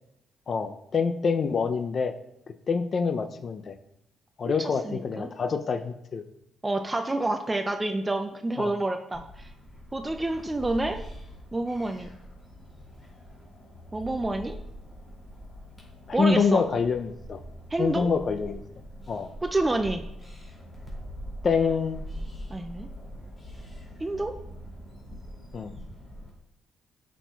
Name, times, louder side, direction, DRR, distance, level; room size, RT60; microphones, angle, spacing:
voice 1, 0.5-2.1 2.7-3.8 4.4-6.2 8.6-8.7 16.1-17.4 17.8-18.6 19.1-19.3 21.4-22.0 25.5-25.7, left 5 dB, 45° left, 9 dB, 0.4 m, -26 dB
voice 2, 4.4-5.3 6.6-9.5 9.9-11.0 11.5-12.1 13.9-14.6 16.1-16.6 17.7-18.1 19.4-20.0 22.5-22.9 24.0-24.3, right 2 dB, 15° right, 6 dB, 0.4 m, -28 dB
sound 1, 9.1-26.3, equal, 25° left, 2.5 m, -43 dB
8.0 x 6.0 x 2.3 m, 0.81 s
cardioid pair, 90°, 0 cm